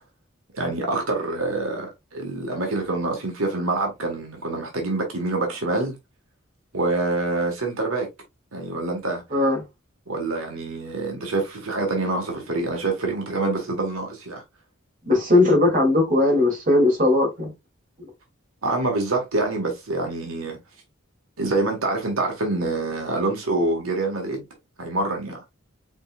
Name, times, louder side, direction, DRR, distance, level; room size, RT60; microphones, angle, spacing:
voice 1, 0.5-5.9 6.7-8.1 8.5-9.2 10.1-14.4 18.6-20.6 21.4-24.5 24.8-25.4, right 2 dB, 90° right, 1.5 m, -26 dB
voice 2, 15.1-17.5, left 2 dB, 40° right, 2.5 m, -18 dB
5.3 x 3.9 x 2.4 m
head